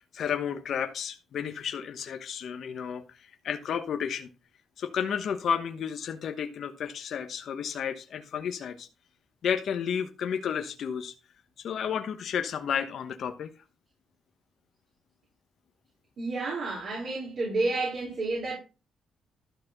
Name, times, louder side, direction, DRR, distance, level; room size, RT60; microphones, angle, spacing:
voice 1, 0.0-4.3 4.8-8.9 9.4-11.1 11.6-13.5, left 7 dB, 60° left, 1.0 m, -32 dB
voice 2, 16.2-18.5, right 3 dB, 55° right, 4.4 m, -30 dB
12.5 x 4.2 x 6.6 m
cardioid pair, 90°, 0 cm